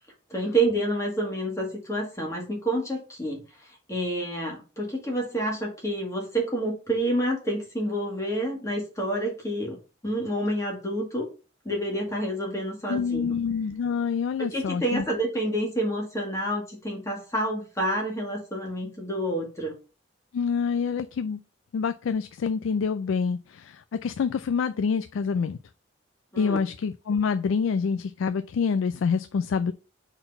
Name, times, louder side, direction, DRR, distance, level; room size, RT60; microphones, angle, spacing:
voice 1, 0.3-11.3 11.7-13.3 14.4-19.7 26.3-26.6, right 1 dB, 15° left, 1.8 m, -28 dB
voice 2, 12.9-15.0 20.3-21.4 21.7-25.6 26.4-29.7, left 5 dB, 75° left, 0.3 m, -27 dB
4.4 x 4.0 x 5.3 m
head